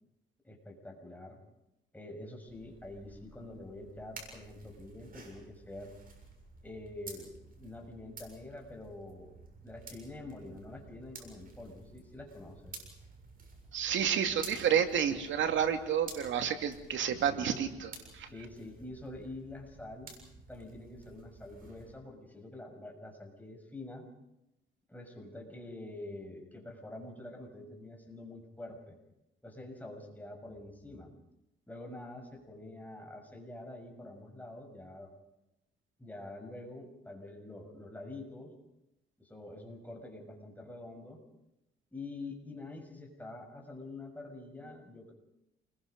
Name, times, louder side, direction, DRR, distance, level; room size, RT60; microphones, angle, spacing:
voice 1, 0.4-1.4 1.9-5.9 6.6-7.3 7.6-9.3 9.6-12.7 17.3-17.5 18.3-20.1 20.5-24.0 24.9-29.0 29.4-31.1 31.7-35.1 36.0-38.5 39.2-41.2 41.9-45.1, left 2 dB, 10° left, 2 dB, 6.3 m, -46 dB
sound 1, 2.5-21.9, right 3 dB, 45° right, 7.1 m, -52 dB
voice 2, 13.7-18.3, right 8 dB, 70° right, 7 dB, 2.5 m, -30 dB
28.5 x 22.0 x 5.3 m, 0.89 s
cardioid pair, 90°, 20 cm